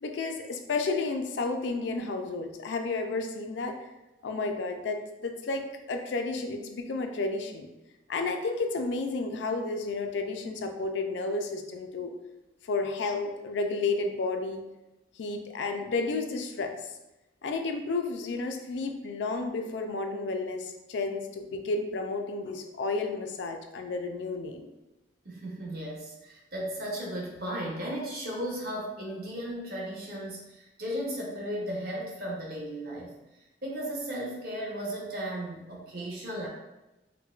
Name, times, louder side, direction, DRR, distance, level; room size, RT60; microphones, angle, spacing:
voice 1, 0.0-3.8 4.2-7.7 8.1-12.1 12.6-14.6 15.2-16.9 17.4-24.7, left 3 dB, 80° left, 5 dB, 0.4 m, -32 dB
voice 2, 25.2-33.1 33.6-36.5, right 1 dB, 55° right, -3 dB, 0.9 m, -35 dB
4.4 x 2.1 x 2.3 m, 0.99 s
head